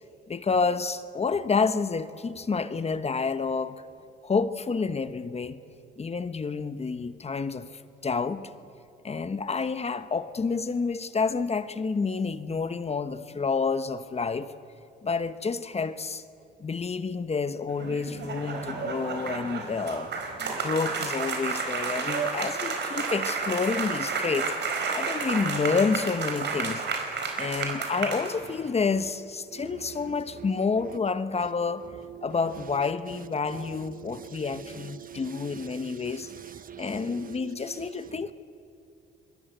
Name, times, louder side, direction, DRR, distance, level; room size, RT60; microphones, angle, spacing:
voice 1, 0.3-3.8 4.2-5.6 6.0-8.5 9.0-14.5 15.0-16.2 16.6-20.1 20.5-24.5 24.9-26.8 27.4-31.8 32.2-36.3 36.8-38.3, left 4 dB, 30° left, 1.1 m, -29 dB
sound 1, 17.7-28.7, right 4 dB, 60° right, 4.3 m, -31 dB
voice 2, 29.5-31.0 31.4-31.5 31.8-32.3 33.1-33.2 33.5-38.3, right 10 dB, 45° right, 1.2 m, -44 dB
27.0 x 22.5 x 8.1 m
cardioid pair, 90°, 20 cm